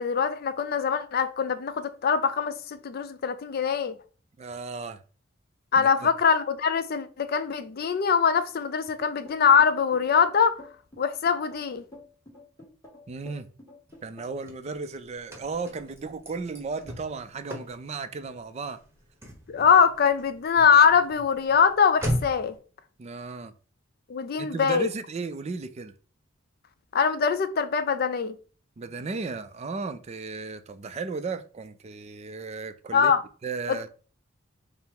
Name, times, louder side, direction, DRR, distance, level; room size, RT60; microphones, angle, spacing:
voice 1, 0.0-4.0 5.7-10.6 11.0-11.8 19.5-22.6 24.1-24.9 26.9-28.4 32.9-33.2 33.7-33.9, left 6 dB, 50° left, 0.4 m, -23 dB
voice 2, 4.4-5.0 5.8-6.1 13.1-13.5 14.0-18.8 23.0-23.5 24.4-25.9 28.8-33.1 33.4-33.9, right 4 dB, 35° right, 0.4 m, -35 dB
sound 1, 9.3-14.5, left 2 dB, 15° left, 1.7 m, -49 dB
Car / Slam, 13.9-22.6, equal, 15° right, 1.0 m, -38 dB
5.4 x 2.0 x 4.6 m
head